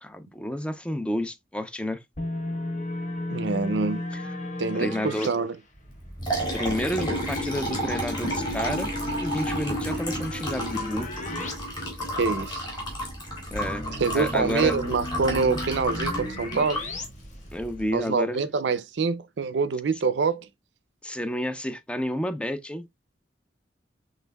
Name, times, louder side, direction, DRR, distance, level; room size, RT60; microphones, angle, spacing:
voice 1, 0.0-2.0 4.7-5.3 6.5-8.9 9.2-11.1 13.5-13.8 14.1-14.7 17.5-18.4 21.0-22.9, equal, 5° left, 0.4 m, -30 dB
sound 1, 2.2-5.3 6.7-11.5 11.8-11.9 13.5-17.1, left 2 dB, 45° left, 1.0 m, -34 dB
voice 2, 3.3-4.0 4.6-5.5 12.2-12.7 14.0-16.8 17.9-20.5, right 4 dB, 80° right, 0.5 m, -25 dB
Liquid, 5.9-17.8, right 1 dB, 25° left, 2.0 m, -32 dB
5.6 x 3.3 x 2.2 m
head